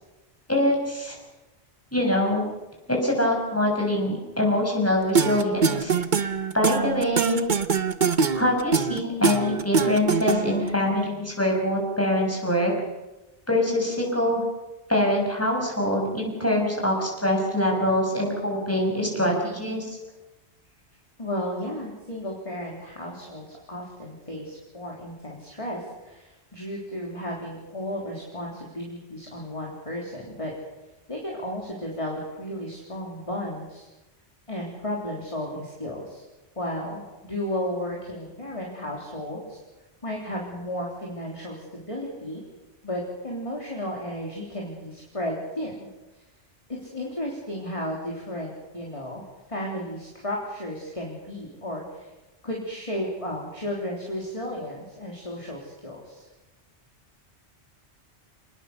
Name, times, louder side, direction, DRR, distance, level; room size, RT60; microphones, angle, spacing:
voice 1, 0.5-1.2 1.9-2.4 2.9-5.9 6.5-7.4 8.3-12.7 13.5-14.4 14.9-20.0, left 1 dB, 10° left, 0 dB, 6.5 m, -24 dB
sound 1, 5.2-10.7, right 5 dB, 45° right, 1.0 m, -23 dB
voice 2, 21.2-30.5 31.1-33.9 34.5-36.2 36.6-39.6 40.0-42.4 42.8-45.9 46.7-52.1 52.4-56.2, left 1 dB, 30° left, -2 dB, 3.7 m, -33 dB
27.5 x 20.0 x 6.8 m, 1.1 s
omnidirectional pair, 1.2 m